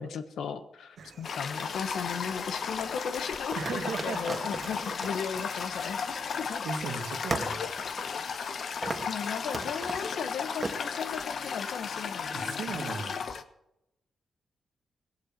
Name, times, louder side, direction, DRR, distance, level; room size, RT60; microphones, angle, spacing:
voice 1, 0.0-6.0 6.4-6.6 7.5-7.7 8.3-8.7 9.1-12.7, left 7 dB, 85° left, 10 dB, 1.2 m, -36 dB
sound 1, 1.0-6.6, right 4 dB, 55° right, 1.9 m, -54 dB
Toilet flush, 1.2-13.4, left 6 dB, 60° left, 1.0 m, -35 dB
sound 2, 1.4-2.3 3.5-6.5 6.8-6.9 7.3-8.6 8.8-9.2 9.5-10.1 10.6-10.8, right 2 dB, 30° right, 1.6 m, -37 dB
voice 2, 3.5-4.5 5.0-5.2 6.0-6.1 6.6-7.6 12.3-13.3, right 5 dB, 85° right, 6 dB, 1.7 m, -37 dB
18.0 x 7.9 x 7.5 m, 0.86 s
cardioid pair, 90°, 0 cm